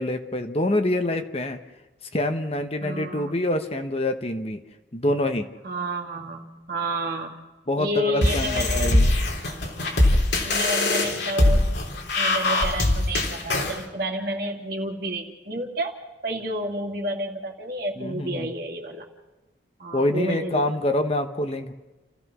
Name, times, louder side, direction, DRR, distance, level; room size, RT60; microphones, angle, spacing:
voice 1, 0.0-1.6 2.1-4.6 4.9-5.5 7.7-9.1 18.0-18.5 19.9-21.7, left 1 dB, 35° left, 7 dB, 1.1 m, -26 dB
voice 2, 2.8-3.3 5.6-7.3 7.8-9.0 10.4-11.7 12.2-19.0 19.8-20.8, right 1 dB, 55° right, 1 dB, 2.8 m, -30 dB
sound 1, 8.2-13.8, left 1 dB, 75° left, 3.4 m, -22 dB
30.0 x 15.0 x 6.2 m, 1.1 s
head